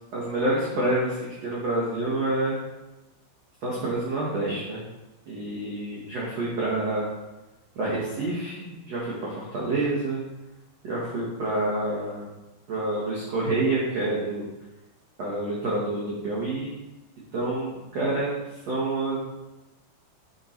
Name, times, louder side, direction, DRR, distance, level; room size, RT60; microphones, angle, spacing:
voice 1, 0.1-2.6 3.6-4.8 5.3-7.0 7.7-10.2 10.8-12.3 12.7-14.4 15.2-16.7 17.3-19.2, right 2 dB, 80° right, -6 dB, 1.4 m, -28 dB
6.7 x 5.7 x 4.4 m, 1.0 s
omnidirectional pair, 5.3 m